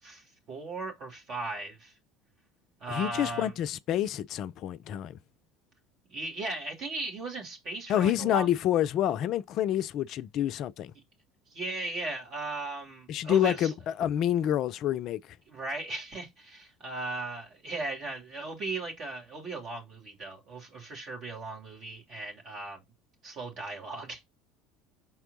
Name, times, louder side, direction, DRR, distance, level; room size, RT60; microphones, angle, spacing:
voice 1, 0.0-1.9 2.8-3.5 6.1-8.5 11.5-13.7 15.5-22.8 23.2-24.2, right 3 dB, 50° right, 2.8 m, -37 dB
voice 2, 2.9-5.2 7.9-10.9 13.1-15.2, left 11 dB, 50° left, 0.4 m, -28 dB
5.9 x 4.5 x 3.8 m
figure-of-eight pair, 65°, 0 cm